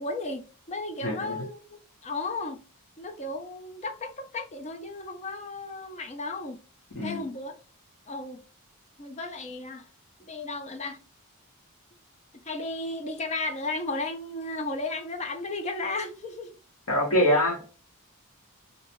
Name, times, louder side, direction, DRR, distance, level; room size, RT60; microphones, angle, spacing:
voice 1, 0.0-2.6 3.0-6.6 7.0-7.5 8.1-8.4 9.0-9.9 10.2-11.0 12.4-16.6, left 2 dB, 30° left, 0.4 m, -34 dB
voice 2, 1.0-1.4 6.9-7.3 16.9-17.6, left 1 dB, 70° left, 1.0 m, -24 dB
2.7 x 2.3 x 2.9 m
head